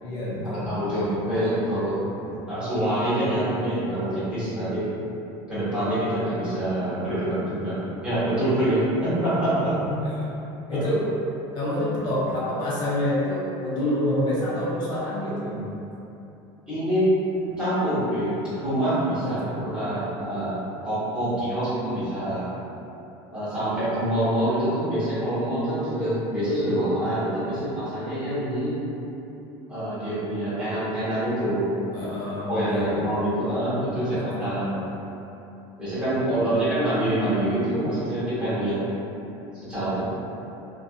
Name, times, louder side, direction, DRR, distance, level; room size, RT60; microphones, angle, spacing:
voice 1, 0.0-1.1 2.2-2.4 9.9-10.3 10.7-11.0 11.5-15.8 19.2-20.0 21.3-22.1 31.9-33.3 34.0-34.9 36.2-37.0, left 1 dB, 40° left, -7 dB, 0.6 m, -29 dB
voice 2, 0.5-2.0 2.5-4.8 5.5-7.8 8.0-9.7 10.7-10.8 13.7-14.0 16.7-17.1 17.6-22.5 23.3-28.8 29.7-31.7 32.5-34.7 35.8-38.8 39.5-40.0, right 1 dB, 10° right, -15 dB, 1.2 m, -26 dB
2.6 x 2.6 x 2.3 m, 2.9 s
cardioid pair, 155°, 12 cm